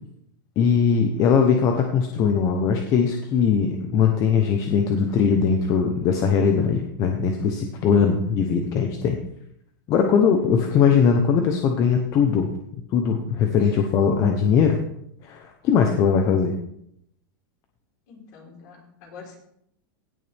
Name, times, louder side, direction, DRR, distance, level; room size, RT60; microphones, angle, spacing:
voice 1, 0.6-9.2 9.9-12.5 12.9-14.8 15.2-16.5, left 6 dB, 30° left, 4 dB, 0.9 m, -20 dB
voice 2, 18.1-19.4, left 5 dB, 50° left, -1 dB, 4.0 m, -45 dB
17.0 x 6.9 x 3.5 m, 0.74 s
supercardioid pair, 165°, 12 cm